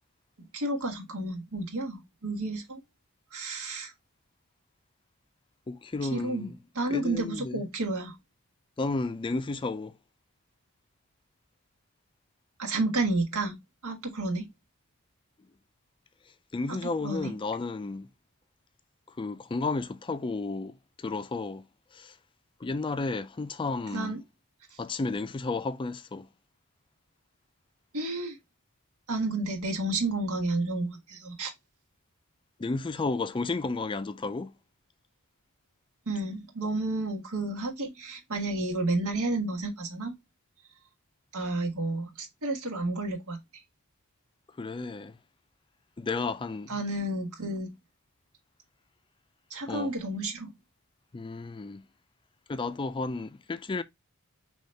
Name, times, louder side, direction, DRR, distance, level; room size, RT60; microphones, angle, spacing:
voice 1, 0.5-2.8 3.3-3.9 6.0-8.1 12.6-13.6 13.8-14.5 16.7-17.3 23.9-24.2 27.9-28.4 29.1-31.5 36.1-40.1 41.3-43.4 46.7-47.7 49.5-50.5, right 2 dB, 85° right, 1.4 m, -31 dB
voice 2, 5.7-6.6 6.9-7.7 8.8-9.9 16.5-18.1 19.2-21.6 21.9-22.1 22.6-24.2 24.8-26.3 32.6-34.5 44.6-45.2 46.0-46.8 49.7-49.9 51.1-51.8 52.5-53.8, left 3 dB, 25° left, 0.4 m, -32 dB
5.5 x 3.0 x 3.2 m
head